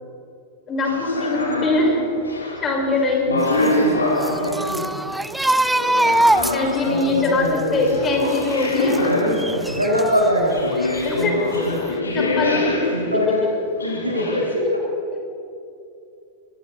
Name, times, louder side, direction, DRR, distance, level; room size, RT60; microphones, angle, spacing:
voice 1, 0.7-2.0 2.6-3.3 5.4-5.6 6.5-9.2 11.0-11.3 12.1-12.9, left 2 dB, 25° left, 0 dB, 6.1 m, -22 dB
sound 1, 0.8-5.0 5.8-9.9 10.5-13.3 13.8-14.5, left 2 dB, 75° left, 4.6 m, -25 dB
voice 2, 3.3-4.9 6.8-7.8 9.1-11.7 12.0-12.6 12.9-13.4 13.8-14.6, equal, 85° right, -3 dB, 7.1 m, -24 dB
sound 2, 3.4-10.3 10.7-11.6 11.8-12.0, right 1 dB, 5° right, 0.5 m, -24 dB
29.0 x 22.5 x 4.4 m, 2.5 s
figure-of-eight pair, 90°, 0 cm